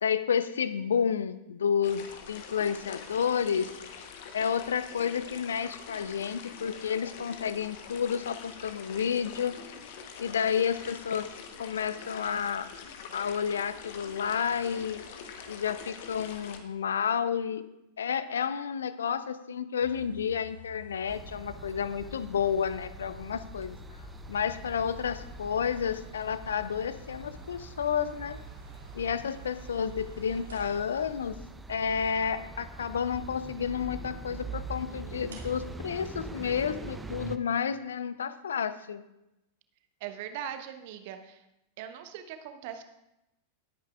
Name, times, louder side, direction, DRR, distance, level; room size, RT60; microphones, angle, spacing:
voice 1, 0.0-3.7 4.3-9.6 10.2-11.3 11.6-12.7 13.1-15.0 15.5-17.6 18.0-23.8 24.3-28.4 28.9-31.4 31.7-39.0, left 7 dB, 65° left, 14 dB, 0.6 m, -30 dB
sound 1, 1.8-16.6, left 6 dB, 50° left, 1.1 m, -45 dB
sound 2, 19.8-31.5 35.3-36.2, right 1 dB, 70° right, 2.1 m, -50 dB
sound 3, 21.1-37.4, right 3 dB, 10° right, 0.7 m, -44 dB
voice 2, 40.0-41.4 41.8-42.8, right 9 dB, 50° right, 8 dB, 1.1 m, -40 dB
19.5 x 8.7 x 2.5 m, 0.90 s
figure-of-eight pair, 90°, 0 cm